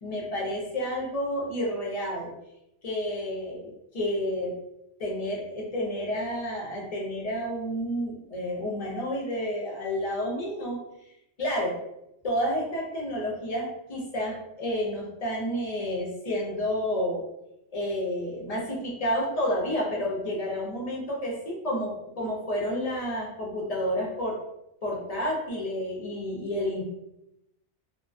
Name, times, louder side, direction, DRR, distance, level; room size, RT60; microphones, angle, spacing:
voice 1, 0.0-2.3 2.8-4.5 5.0-10.8 11.4-11.7 12.2-17.2 17.7-24.3 24.8-26.8, equal, 40° left, -3 dB, 0.6 m, -30 dB
2.3 x 2.2 x 2.4 m, 0.86 s
omnidirectional pair, 1.2 m